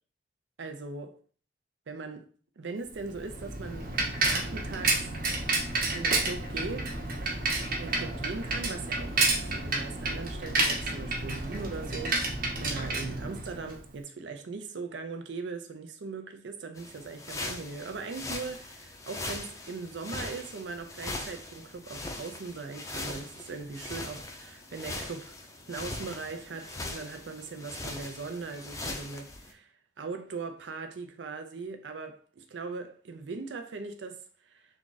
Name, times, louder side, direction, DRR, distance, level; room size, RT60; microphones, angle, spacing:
voice 1, 0.6-1.2 1.9-2.3 2.6-3.9 4.2-5.1 5.9-7.0 7.8-25.3 25.7-29.7 30.0-34.2 34.5-34.6, right 4 dB, 85° right, 0.5 m, -39 dB
Bicycle, 3.0-13.8, right 2 dB, 55° right, 0.9 m, -30 dB
sound 1, 16.8-29.5, left 2 dB, 20° left, 0.4 m, -40 dB
3.6 x 2.4 x 3.9 m
head